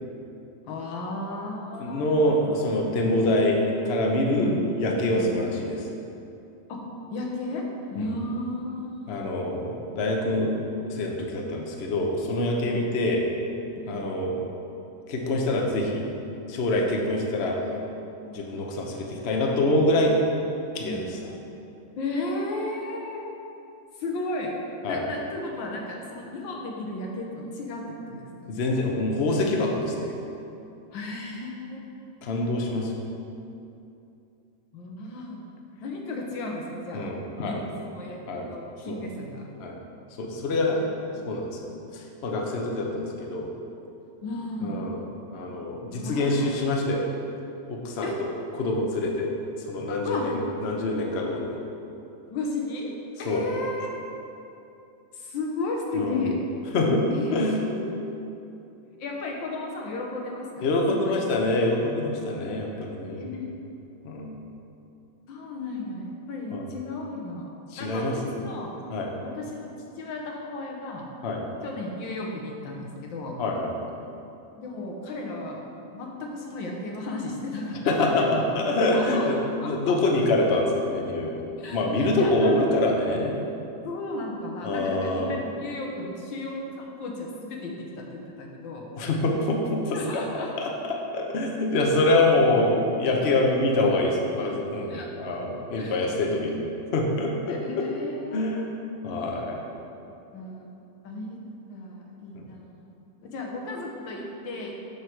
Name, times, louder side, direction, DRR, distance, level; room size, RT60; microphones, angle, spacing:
voice 1, 0.7-2.7 3.0-3.3 4.4-4.6 5.1-5.3 6.7-6.8 7.1-9.4 12.6-12.8 13.7-14.0 18.2-18.5 20.8-21.0 22.0-23.2 24.0-24.5 24.9-28.5 30.9-31.8 34.7-35.4 35.8-37.1 37.4-39.5 40.7-41.4 44.2-44.9 45.9-46.6 48.0-48.2 50.0-50.3 52.3-52.9 53.2-54.0 55.1-56.3 57.1-58.0 59.0-61.3 63.2-63.6 65.3-67.5 67.8-68.7 69.2-71.0 71.6-73.4 74.6-75.6 75.9-78.3 78.8-79.9 81.6-82.6 83.8-88.9 89.9-90.5 92.1-92.2 94.9-95.1 95.8-95.9 97.5-98.6 100.0-100.7 101.0-101.4 101.7-102.7 103.2-104.8, left 2 dB, 75° left, 0 dB, 1.6 m, -34 dB
voice 2, 1.8-4.5 4.8-5.8 8.0-8.1 9.1-10.6 10.9-13.2 13.9-14.4 15.1-16.0 16.5-17.6 18.3-20.1 20.7-21.2 24.8-25.0 28.5-30.1 32.2-32.9 36.9-37.6 38.3-38.5 38.9-39.0 39.6-39.7 40.2-40.8 41.3-41.6 41.9-43.5 44.6-45.0 45.3-47.1 47.7-48.1 48.6-49.3 49.7-51.5 53.2-53.6 55.9-56.2 56.7-57.0 57.3-57.5 60.6-63.3 64.0-64.4 66.5-66.6 67.7-68.3 68.9-69.1 71.2-71.4 73.4-73.7 77.8-79.4 79.6-83.4 84.6-85.4 89.0-90.2 90.6-97.8 98.3-98.6 99.0-99.6 102.3-102.4, left 2 dB, 60° left, 0 dB, 0.7 m, -25 dB
6.5 x 6.3 x 4.5 m, 2.8 s
omnidirectional pair, 2.2 m